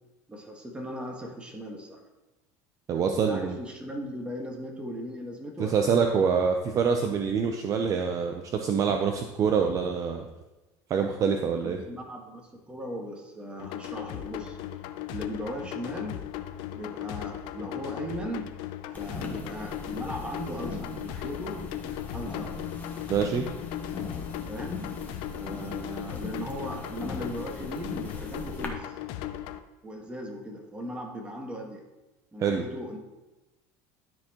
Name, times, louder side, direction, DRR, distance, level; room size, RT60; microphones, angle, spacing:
voice 1, 0.3-2.0 3.3-6.1 11.6-14.6 15.1-16.2 16.7-18.5 19.0-21.6 22.1-22.5 24.5-24.8 25.3-29.0 29.8-31.8 32.3-33.0, equal, 10° right, 1 dB, 1.6 m, -38 dB
voice 2, 2.9-3.6 5.6-10.3 10.9-11.8 23.1-23.4 32.4-32.6, right 6 dB, 40° right, 4 dB, 0.6 m, -25 dB
sound 1, 13.6-29.6, left 12 dB, 65° left, 0.5 m, -37 dB
sound 2, 18.9-28.7, left 3 dB, 20° left, 1.2 m, -40 dB
12.5 x 4.4 x 3.0 m, 1.1 s
supercardioid pair, 115°, 9 cm